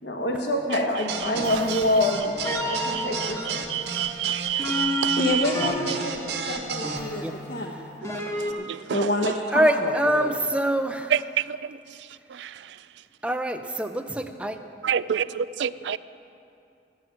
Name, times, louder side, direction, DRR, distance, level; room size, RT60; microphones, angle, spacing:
voice 1, 0.0-3.7, left 1 dB, 70° left, 1.3 m, -26 dB
sound 1, 1.1-7.0, right 5 dB, 65° right, 1.3 m, -33 dB
sound 2, 1.3-8.5, equal, 15° left, 1.1 m, -32 dB
voice 2, 2.7-3.0 3.5-5.4 8.1-9.1 11.1-11.2 11.5-11.7 12.3-12.5 14.8-16.0, right 9 dB, 80° right, 0.4 m, -28 dB
voice 3, 5.2-7.7 8.6-10.3, left 1 dB, 55° left, 0.9 m, -28 dB
voice 4, 9.5-11.1 13.2-14.6, right 1 dB, 5° right, 0.5 m, -24 dB
14.0 x 9.2 x 7.4 m
head